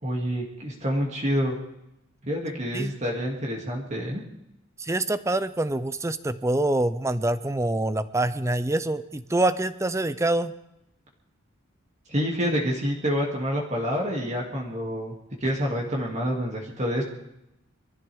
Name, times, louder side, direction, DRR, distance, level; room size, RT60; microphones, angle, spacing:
voice 1, 0.0-1.5 2.2-4.2 12.1-15.1 15.4-17.0, equal, 35° right, -2 dB, 2.5 m, -27 dB
voice 2, 4.8-10.5, right 2 dB, 15° right, 13 dB, 0.5 m, -25 dB
23.5 x 15.0 x 3.6 m, 0.86 s
head